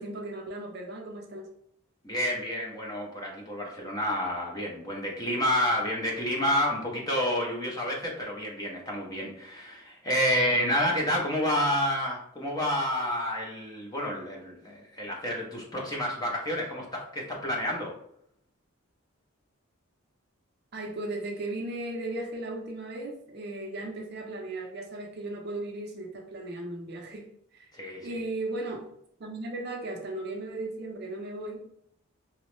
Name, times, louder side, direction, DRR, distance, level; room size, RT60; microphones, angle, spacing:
voice 1, 0.0-1.5 20.7-27.2 27.5-27.7 28.0-28.9 29.2-31.6, right 2 dB, 50° right, 2 dB, 0.5 m, -36 dB
voice 2, 2.0-17.9 27.7-28.2, left 1 dB, 20° left, -2 dB, 0.5 m, -29 dB
2.9 x 2.0 x 3.0 m, 0.70 s
head